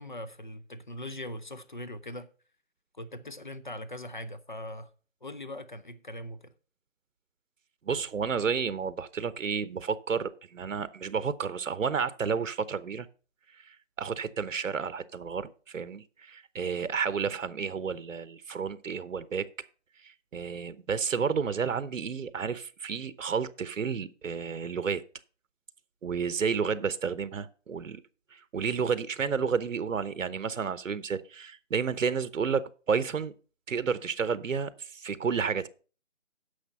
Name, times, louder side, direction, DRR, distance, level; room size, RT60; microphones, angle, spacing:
voice 1, 0.0-2.3 3.0-4.9 5.2-6.5, left 1 dB, 40° left, 0.6 m, -41 dB
voice 2, 7.8-13.1 13.7-19.5 20.0-25.0 26.0-28.0 28.3-33.3 33.7-35.7, right 6 dB, 80° right, 0.9 m, -31 dB
9.9 x 6.5 x 5.5 m
hypercardioid pair, 180°, 38 cm